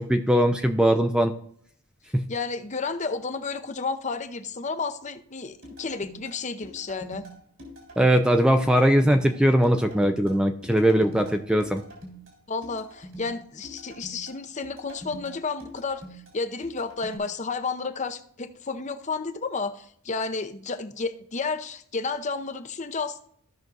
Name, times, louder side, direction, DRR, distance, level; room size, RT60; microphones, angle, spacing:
voice 1, 0.0-1.3 2.1-2.3 8.0-11.8, equal, 5° right, 6 dB, 0.4 m, -20 dB
voice 2, 2.3-7.2 12.5-23.2, left 4 dB, 35° left, 8 dB, 0.7 m, -32 dB
sound 1, 5.6-17.2, equal, 60° right, 3.7 m, -45 dB
15.5 x 6.0 x 2.6 m, 0.65 s
head